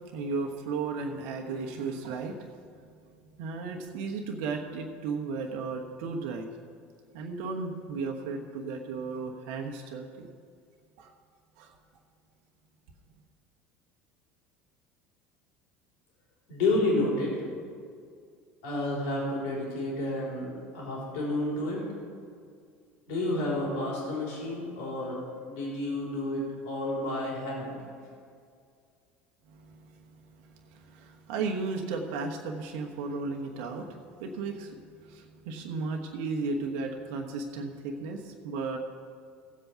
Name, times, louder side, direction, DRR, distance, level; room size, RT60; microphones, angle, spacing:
voice 1, 0.0-2.5 3.4-6.5 7.1-10.3 11.0-11.1 11.6-11.7 29.5-30.0 30.4-34.8 35.0-38.8, right 4 dB, 65° right, 2 dB, 1.1 m, -35 dB
voice 2, 16.5-17.3 18.6-21.8 23.1-25.2 25.5-27.8, left 2 dB, 65° left, -3 dB, 3.8 m, -30 dB
16.0 x 7.9 x 5.7 m, 2.2 s
figure-of-eight pair, 70°, 7 cm